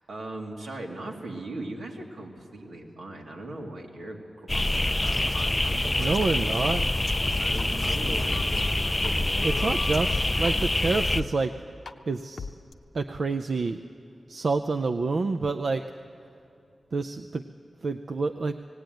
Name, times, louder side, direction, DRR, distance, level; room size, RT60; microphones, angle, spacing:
voice 1, 0.0-6.2 7.3-9.8 10.3-10.6, right 2 dB, 80° right, 0 dB, 2.4 m, -39 dB
sound 1, 4.5-11.2, left 2 dB, 20° left, 0.4 m, -26 dB
voice 2, 6.0-6.9 9.4-11.5 12.1-12.5 12.9-13.8 14.3-15.8 16.9-17.4 17.8-18.6, right 3 dB, 55° right, 7 dB, 0.5 m, -28 dB
sound 2, 6.2-6.3 6.7-9.1 9.4-10.5 11.1-11.3 11.9-12.0 12.4-12.7, left 4 dB, 65° left, 0.6 m, -38 dB
18.0 x 17.0 x 9.2 m, 2.6 s
wide cardioid pair, 150°, 0 cm